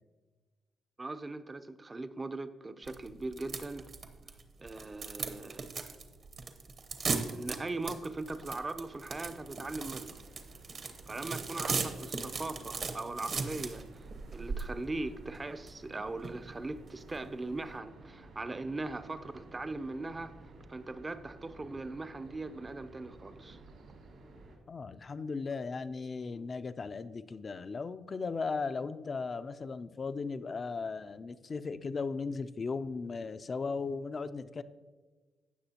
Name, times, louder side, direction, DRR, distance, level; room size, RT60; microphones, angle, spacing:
voice 1, 1.0-3.9 4.6-5.7 7.3-10.2 11.1-20.3 20.7-23.6, right 2 dB, 25° right, 11 dB, 0.5 m, -40 dB
sound 1, 2.9-17.8, right 4 dB, 50° right, 1.0 m, -39 dB
sound 2, 8.9-24.6, right 2 dB, 70° right, 2.4 m, -54 dB
voice 2, 24.7-34.6, left 4 dB, 35° left, 12 dB, 0.4 m, -37 dB
17.0 x 6.1 x 2.9 m, 1.3 s
cardioid pair, 90°, 0 cm